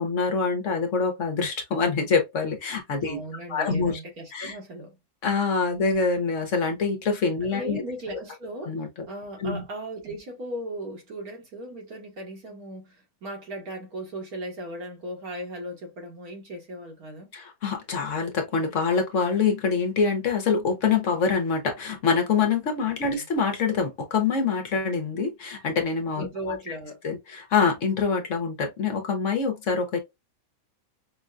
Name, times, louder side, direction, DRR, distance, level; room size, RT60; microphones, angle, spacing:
voice 1, 0.0-3.2 3.5-4.0 4.3-4.6 5.2-7.8 8.6-8.9 9.4-9.6 17.3-26.5 27.0-30.0, left 5 dB, 60° left, 1.1 m, -25 dB
voice 2, 3.0-5.0 7.4-17.3 23.1-23.3 26.2-27.0, right 1 dB, 80° right, 2.0 m, -37 dB
5.3 x 2.2 x 2.5 m
omnidirectional pair, 1.5 m